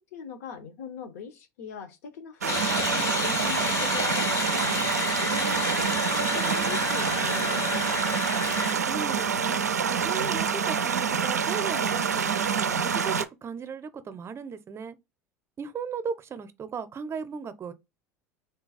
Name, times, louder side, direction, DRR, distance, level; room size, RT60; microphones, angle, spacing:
voice 1, 0.1-7.8, left 6 dB, 70° left, 0.9 m, -41 dB
sound 1, 2.4-13.2, right 6 dB, 85° right, 0.4 m, -27 dB
sound 2, 2.5-8.7, left 6 dB, 35° left, 0.6 m, -31 dB
voice 2, 8.5-9.6 9.9-15.0 15.6-17.7, right 6 dB, 30° right, 0.6 m, -36 dB
3.9 x 2.3 x 4.0 m
figure-of-eight pair, 70°, 8 cm